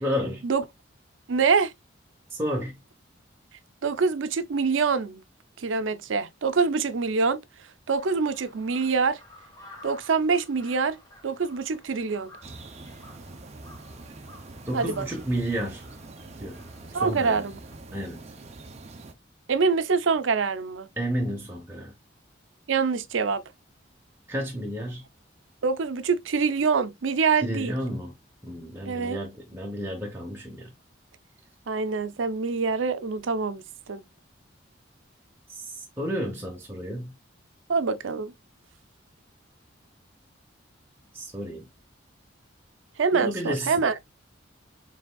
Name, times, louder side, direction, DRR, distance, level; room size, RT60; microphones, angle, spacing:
voice 1, 0.0-0.4 2.3-2.8 14.6-15.8 16.4-16.6 16.9-17.4 17.9-18.2 21.0-21.9 24.3-25.0 27.4-28.1 28.4-30.7 35.5-37.1 41.1-41.7 43.1-43.9, equal, 10° right, 1.0 m, -31 dB
voice 2, 1.3-1.7 3.8-5.2 5.6-7.4 7.9-9.2 9.8-11.0 11.2-12.3 14.7-15.1 16.9-17.6 19.5-20.9 22.7-23.4 25.6-27.7 28.9-29.2 31.7-34.0 37.7-38.3 43.0-43.9, right 5 dB, 85° right, 0.5 m, -25 dB
Crow, 8.0-17.7, left 1 dB, 20° left, 1.3 m, -52 dB
sound 1, 12.4-19.1, right 2 dB, 35° right, 0.6 m, -44 dB
5.0 x 3.4 x 2.3 m
head